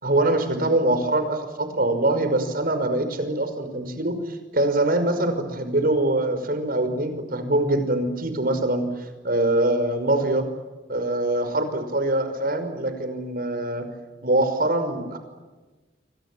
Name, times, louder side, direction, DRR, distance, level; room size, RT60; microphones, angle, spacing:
voice 1, 0.0-10.5 10.9-13.9 14.2-15.2, right 1 dB, 50° right, 8 dB, 5.6 m, -23 dB
29.5 x 24.5 x 7.7 m, 1.2 s
head